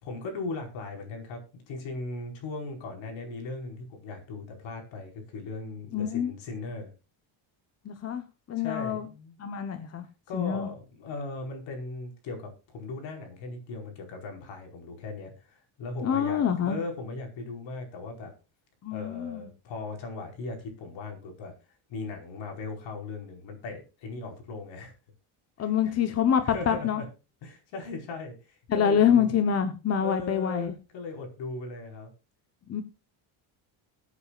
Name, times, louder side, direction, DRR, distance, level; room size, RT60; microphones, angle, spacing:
voice 1, 0.0-6.9 8.6-9.4 10.3-18.3 18.9-21.5 21.9-24.9 25.6-26.0 26.4-27.0 27.4-29.3 30.0-32.1, left 3 dB, 65° left, 3 dB, 5.0 m, -38 dB
voice 2, 5.9-6.3 7.8-9.1 9.4-10.1 10.3-10.7 16.0-16.8 18.8-19.5 25.6-27.0 28.7-30.7 32.7-32.8, left 8 dB, 30° left, 8 dB, 1.0 m, -26 dB
22.0 x 8.4 x 2.4 m, 0.30 s
cardioid pair, 155°, 49 cm